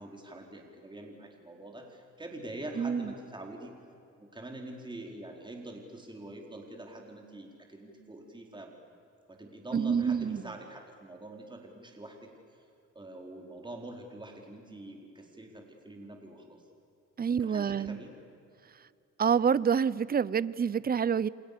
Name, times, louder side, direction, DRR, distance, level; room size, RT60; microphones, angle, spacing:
voice 1, 0.0-3.7 4.2-8.7 9.3-12.6 12.9-16.6 17.3-18.1, right 1 dB, 15° right, 2 dB, 4.6 m, -45 dB
voice 2, 2.8-3.1 9.7-10.4 17.2-18.0 19.2-21.3, right 7 dB, 30° right, 20 dB, 0.7 m, -27 dB
29.0 x 27.0 x 6.9 m, 2.6 s
cardioid pair, 90°, 30 cm